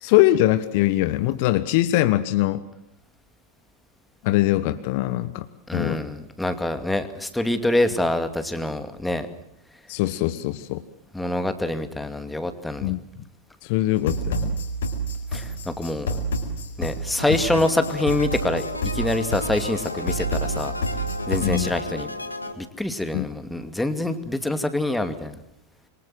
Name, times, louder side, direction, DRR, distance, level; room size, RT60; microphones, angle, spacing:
voice 1, 0.0-2.6 4.2-5.5 5.7-6.0 9.9-10.8 12.8-13.0 13.6-14.5 17.3-17.4 21.4-21.7 23.1-23.3, left 16 dB, 45° left, 12 dB, 1.2 m, -22 dB
voice 2, 5.7-9.3 11.1-12.9 15.3-16.2 16.8-18.6 18.9-20.7 21.3-22.1 22.6-25.4, left 1 dB, 5° left, 9 dB, 2.4 m, -25 dB
sound 1, 14.0-21.6, right 1 dB, 65° left, 4.6 m, -29 dB
sound 2, 17.2-22.5, left 2 dB, 80° left, 2.3 m, -33 dB
27.0 x 23.5 x 7.7 m, 0.78 s
figure-of-eight pair, 90°, 0 cm